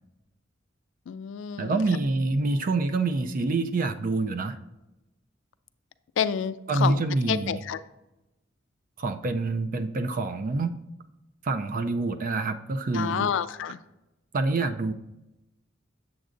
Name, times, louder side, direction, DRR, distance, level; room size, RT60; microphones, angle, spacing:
voice 1, 1.1-1.8 6.2-7.8 12.9-13.8, left 8 dB, 70° left, 13 dB, 0.3 m, -29 dB
voice 2, 1.6-4.6 6.7-7.6 9.0-10.7 11.4-13.3 14.3-14.9, right 3 dB, 45° right, 9 dB, 0.4 m, -26 dB
7.9 x 7.2 x 2.5 m, 0.97 s
head